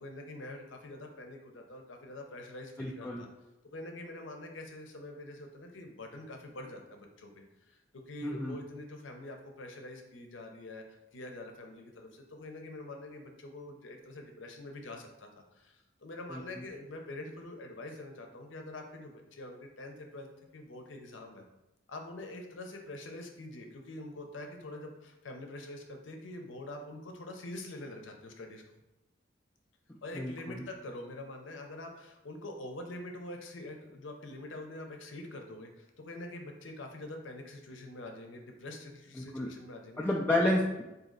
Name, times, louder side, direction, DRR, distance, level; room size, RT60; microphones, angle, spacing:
voice 1, 0.0-3.3 3.7-10.8 11.1-20.3 20.5-21.4 21.9-28.6 30.0-40.1, left 1 dB, 85° left, 3 dB, 0.7 m, -45 dB
voice 2, 2.8-3.2 8.2-8.5 16.3-16.4 30.2-30.6 39.2-39.5 40.0-40.8, left 1 dB, 10° left, -4 dB, 0.3 m, -30 dB
4.1 x 2.8 x 3.8 m, 0.96 s
head